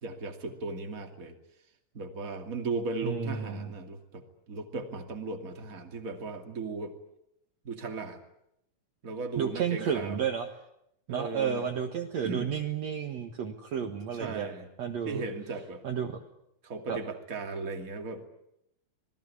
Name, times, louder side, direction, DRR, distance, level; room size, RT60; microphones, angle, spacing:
voice 1, 0.0-1.4 1.9-7.0 7.6-8.2 9.0-10.3 11.1-11.6 12.2-12.5 13.8-14.7 15.0-15.8 16.6-18.2, right 3 dB, 25° right, 4 dB, 2.6 m, -37 dB
voice 2, 3.0-3.7 9.4-10.5 11.1-14.5 14.8-15.2 15.8-16.2 16.9-17.0, right 7 dB, 55° right, 4 dB, 2.4 m, -32 dB
26.5 x 20.0 x 9.8 m, 0.79 s
omnidirectional pair, 4.0 m